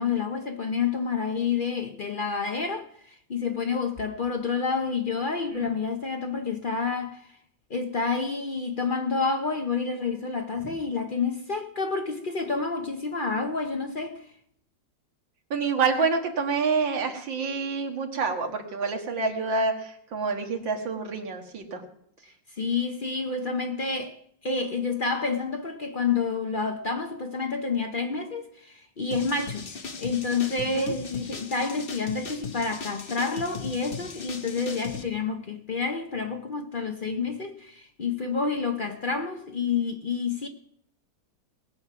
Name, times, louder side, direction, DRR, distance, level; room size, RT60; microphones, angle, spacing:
voice 1, 0.0-7.3 7.7-14.3 22.6-24.2 24.4-29.7 30.0-40.5, left 4 dB, 55° left, 0.5 m, -29 dB
voice 2, 15.5-21.8 30.7-30.9, right 4 dB, 85° right, 2.4 m, -27 dB
sound 1, 29.1-35.0, left 5 dB, 35° left, 1.0 m, -38 dB
19.5 x 7.4 x 5.9 m
omnidirectional pair, 2.0 m